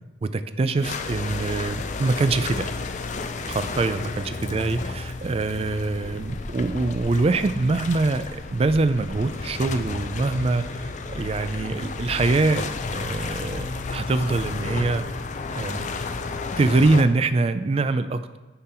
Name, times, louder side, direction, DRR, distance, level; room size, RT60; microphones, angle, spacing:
voice 1, 0.2-2.7 3.5-15.0 15.5-15.9 16.6-18.4, right 3 dB, 30° right, 12 dB, 0.3 m, -24 dB
sound 1, 0.8-17.0, left 3 dB, 40° left, 0.4 m, -32 dB
10.5 x 3.9 x 4.3 m, 1.2 s
head